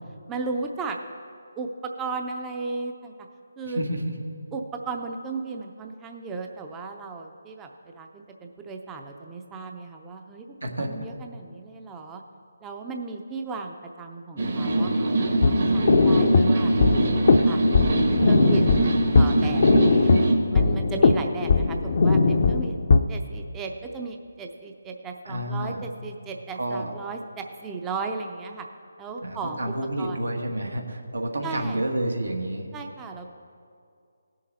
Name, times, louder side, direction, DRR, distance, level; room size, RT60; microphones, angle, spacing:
voice 1, 0.3-1.0 1.6-3.1 3.6-3.8 4.5-12.2 12.6-16.7 17.5-17.6 18.2-18.8 19.1-20.1 20.5-22.8 23.1-28.7 29.0-30.2 31.4-31.8 32.7-33.3, right 4 dB, 15° right, 3 dB, 0.5 m, -35 dB
voice 2, 3.6-4.0 10.6-11.0 25.2-25.8 26.5-26.9 29.2-32.7, right 1 dB, 85° right, 2 dB, 1.6 m, -29 dB
sound 1, 14.4-20.3, right 2 dB, 55° right, 1.5 m, -23 dB
sound 2, 15.4-23.0, left 4 dB, 50° left, 0.6 m, -20 dB
17.0 x 6.5 x 4.2 m, 2.3 s
figure-of-eight pair, 155°, 0 cm